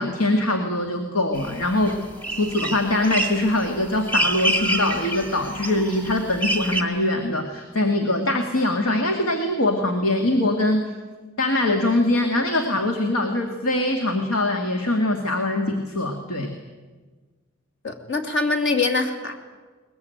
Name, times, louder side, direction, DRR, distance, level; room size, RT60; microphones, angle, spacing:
voice 1, 0.0-2.1 2.4-10.9 11.4-16.5, left 1 dB, 80° left, 4 dB, 2.2 m, -23 dB
sound 1, 1.3-2.0 2.2-6.8, right 1 dB, 10° left, 1.9 m, -27 dB
voice 2, 17.8-19.3, left 3 dB, 55° left, 6 dB, 2.7 m, -23 dB
21.5 x 21.0 x 9.3 m, 1.4 s
head